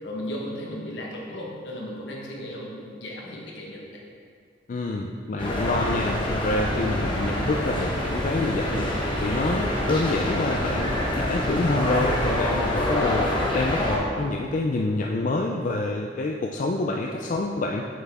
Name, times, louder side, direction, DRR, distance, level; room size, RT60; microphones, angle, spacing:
voice 1, 0.0-4.0, equal, 75° left, -2 dB, 1.3 m, -35 dB
voice 2, 4.7-8.9 9.2-17.8, left 2 dB, 45° left, 1 dB, 0.4 m, -27 dB
sound 1, 5.4-14.0, left 1 dB, 30° left, 1.2 m, -26 dB
7.6 x 5.8 x 3.5 m, 2.1 s
head